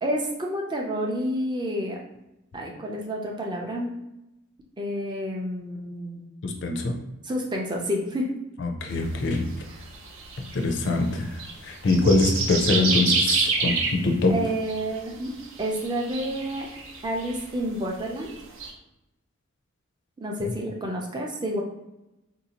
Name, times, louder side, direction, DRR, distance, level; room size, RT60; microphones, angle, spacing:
voice 1, 0.0-2.0 2.5-3.9 4.8-6.3 7.2-8.3 14.3-15.3 15.6-16.7 17.0-18.3 20.2-21.6, equal, 20° right, 0 dB, 0.4 m, -29 dB
voice 2, 6.4-6.9 8.6-9.5 10.5-11.3 11.6-14.3 20.4-20.5, left 2 dB, 50° left, 3 dB, 0.4 m, -23 dB
sound 1, 8.9-11.5 11.8-14.0 14.7-15.0 15.3-17.5 18.0-18.7, right 4 dB, 60° right, 0.6 m, -28 dB
3.9 x 2.7 x 2.9 m, 0.92 s
head